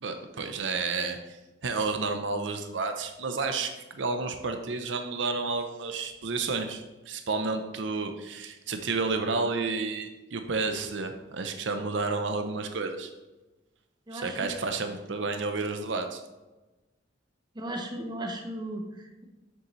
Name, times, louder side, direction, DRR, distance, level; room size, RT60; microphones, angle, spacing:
voice 1, 0.0-13.1 14.1-16.2, right 4 dB, 80° right, 6 dB, 0.7 m, -31 dB
voice 2, 14.1-14.5 17.5-19.2, right 1 dB, 25° right, 3 dB, 0.9 m, -36 dB
7.0 x 6.6 x 3.1 m, 1.1 s
head